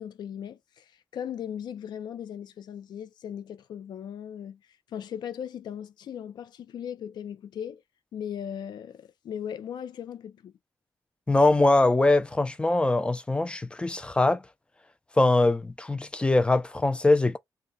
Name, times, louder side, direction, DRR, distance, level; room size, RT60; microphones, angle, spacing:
voice 1, 0.0-4.6 4.9-7.8 8.1-10.5, left 9 dB, 80° left, 0.5 m, -38 dB
voice 2, 11.3-14.4 15.2-17.4, left 2 dB, 15° left, 0.4 m, -22 dB
2.3 x 2.2 x 3.9 m
cardioid pair, 90°, 7 cm